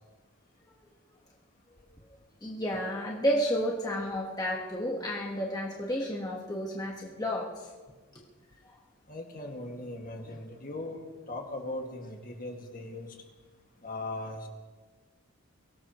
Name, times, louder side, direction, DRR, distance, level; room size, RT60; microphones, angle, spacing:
voice 1, 2.4-7.5, equal, 20° left, -2 dB, 1.5 m, -31 dB
voice 2, 9.1-11.0 11.3-13.2 13.8-14.5, left 2 dB, 40° left, 2 dB, 2.1 m, -39 dB
23.5 x 18.0 x 3.1 m, 1.4 s
head